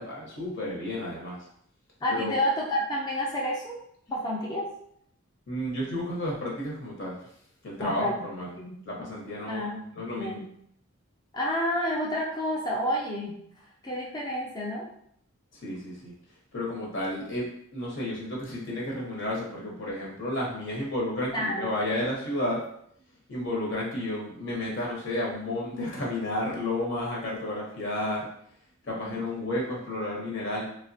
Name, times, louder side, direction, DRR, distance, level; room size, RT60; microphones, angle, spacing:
voice 1, 0.0-1.5 2.1-2.4 5.5-7.2 7.6-8.5 8.8-10.4 15.5-16.1 16.5-17.4 17.7-22.6 23.3-28.3 28.8-30.7, left 1 dB, 55° left, -3 dB, 0.8 m, -32 dB
voice 2, 2.0-3.8 4.1-4.7 7.8-8.1 8.6-8.8 9.5-10.5 11.3-13.4 13.8-14.9 21.3-21.7 29.1-29.2, equal, 20° left, -4 dB, 0.4 m, -29 dB
3.1 x 2.1 x 2.6 m, 0.68 s
head